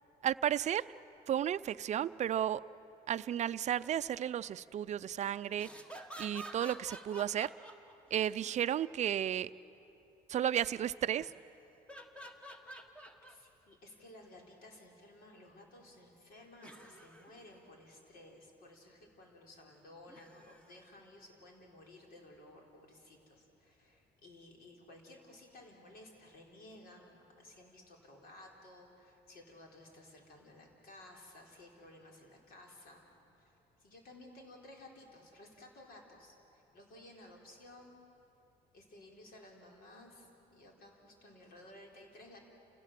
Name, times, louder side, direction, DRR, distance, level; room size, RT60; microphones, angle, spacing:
voice 1, 0.2-0.8 1.3-2.6 3.1-5.7 6.2-7.5 8.1-9.5 10.3-11.3, right 10 dB, 45° right, 13 dB, 0.5 m, -33 dB
sound 1, 5.5-8.3 11.1-11.5 11.9-13.4 14.0-14.1 16.6-17.3 20.1-20.8 21.9-22.0, right 1 dB, 5° left, 1.5 m, -50 dB
voice 2, 13.2-33.1 33.4-38.0 38.7-42.4, left 1 dB, 60° left, 0 dB, 4.3 m, -56 dB
28.5 x 16.5 x 7.6 m, 2.9 s
cardioid pair, 110°, 17 cm